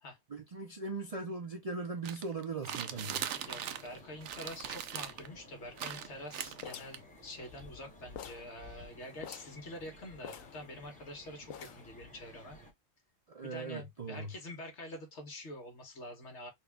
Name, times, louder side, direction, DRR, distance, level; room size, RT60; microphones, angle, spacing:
voice 1, 0.3-3.3 13.3-14.3, right 3 dB, 45° right, 0.5 m, -39 dB
sound 1, 2.0-4.0 4.2-5.3 5.8-7.0, right 9 dB, 70° right, 0.9 m, -39 dB
sound 2, 2.7-12.7, left 1 dB, 5° left, 1.0 m, -55 dB
voice 2, 3.5-12.6 13.4-16.5, left 1 dB, 60° left, 1.6 m, -46 dB
sound 3, 6.6-7.8 8.2-8.5 8.8-8.9 9.2-9.6 10.2-11.1 11.5-12.0, left 9 dB, 85° left, 1.0 m, -47 dB
4.1 x 2.4 x 3.5 m
omnidirectional pair, 1.4 m